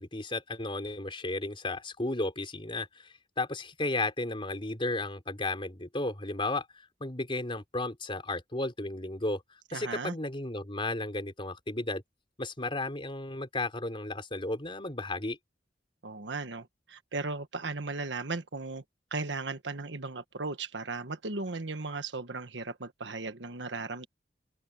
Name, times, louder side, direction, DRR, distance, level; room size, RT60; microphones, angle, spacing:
voice 1, 0.0-6.7 7.0-9.4 9.7-12.0 12.4-15.4, left 2 dB, 30° left, 4.2 m, -34 dB
voice 2, 9.7-10.2 16.0-18.8 19.1-24.1, right 3 dB, 80° right, 1.4 m, -36 dB
open air
head